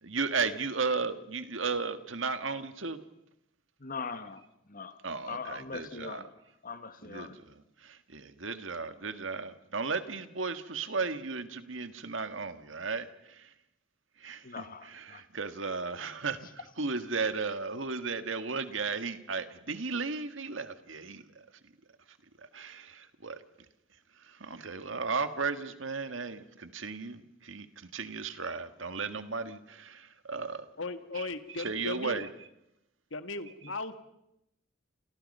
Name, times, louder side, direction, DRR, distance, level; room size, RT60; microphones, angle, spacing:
voice 1, 0.0-3.0 5.0-6.2 7.0-13.5 14.2-21.4 22.5-23.4 24.3-30.7 31.1-31.3 31.6-32.3, right 4 dB, 75° right, 10 dB, 1.7 m, -35 dB
voice 2, 3.8-4.4 4.7-5.0 5.3-6.3 6.6-7.4 14.4-15.2, left 4 dB, 45° left, 10 dB, 1.7 m, -41 dB
voice 3, 30.8-32.2 33.1-34.0, left 3 dB, 70° left, 9 dB, 1.9 m, -37 dB
30.0 x 28.0 x 5.6 m, 0.83 s
head